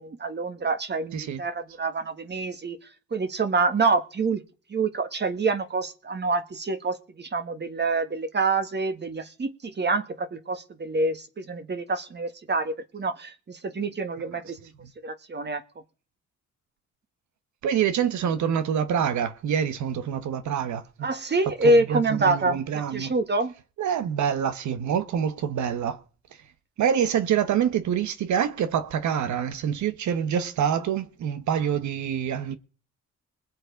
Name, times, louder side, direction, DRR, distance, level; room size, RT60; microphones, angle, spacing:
voice 1, 0.0-2.8 3.1-4.4 4.7-14.6 15.0-15.6 21.0-22.6 22.9-23.5, right 3 dB, 35° right, 1.7 m, -26 dB
voice 2, 17.6-21.1 21.6-23.1 23.8-26.0 26.8-32.6, right 8 dB, 70° right, 1.3 m, -26 dB
21.0 x 7.7 x 5.2 m
cardioid pair, 90°, 30 cm